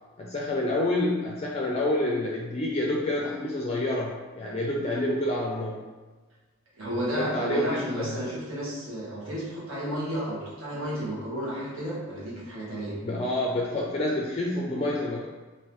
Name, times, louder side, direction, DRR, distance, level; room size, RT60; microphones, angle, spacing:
voice 1, 0.2-5.8 7.2-8.2 13.0-15.3, left 1 dB, 30° left, -3 dB, 0.4 m, -28 dB
voice 2, 6.8-12.9, equal, 70° right, -7 dB, 1.4 m, -32 dB
3.6 x 2.8 x 3.0 m, 1.3 s
head